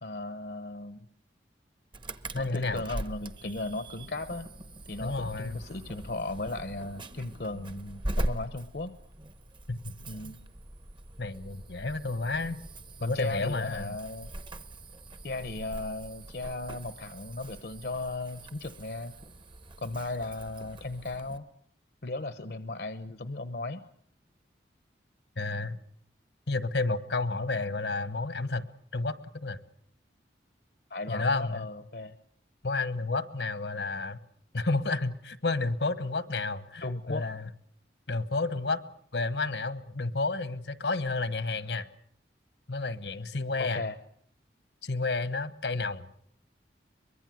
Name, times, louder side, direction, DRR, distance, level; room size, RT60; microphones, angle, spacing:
voice 1, 0.0-1.1 2.4-4.5 4.9-8.9 10.1-10.4 13.0-14.3 15.2-19.1 19.8-21.4 22.0-23.8 30.9-32.2 36.8-37.2 43.6-44.0, left 2 dB, 60° left, 11 dB, 0.9 m, -36 dB
Insect / Alarm, 1.9-21.4, right 1 dB, 25° right, 0.9 m, -41 dB
voice 2, 2.3-2.8 5.0-5.6 9.7-9.9 11.2-12.6 13.0-14.0 25.4-25.8 26.5-28.7 28.9-29.6 31.1-31.7 32.6-34.2 34.5-37.5 38.1-38.8 39.1-41.9 42.7-43.8 44.8-46.1, left 3 dB, 75° left, 14 dB, 1.2 m, -31 dB
24.0 x 21.5 x 7.7 m, 0.66 s
head